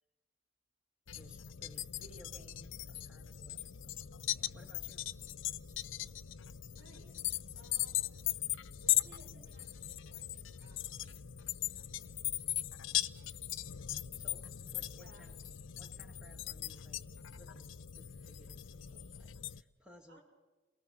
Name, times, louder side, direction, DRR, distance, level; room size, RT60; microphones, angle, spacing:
sound 1, 1.1-19.6, left 13 dB, 80° left, 0.6 m, -39 dB
voice 1, 1.1-4.0 4.3-5.0 11.8-11.9 13.7-15.3 15.8-17.0 17.3-20.2, equal, 5° right, 1 dB, 1.2 m, -60 dB
voice 2, 6.8-8.1 8.8-11.2 15.0-15.3 20.1-20.2, right 1 dB, 60° right, 1 dB, 4.6 m, -61 dB
28.0 x 19.5 x 6.0 m, 1.2 s
head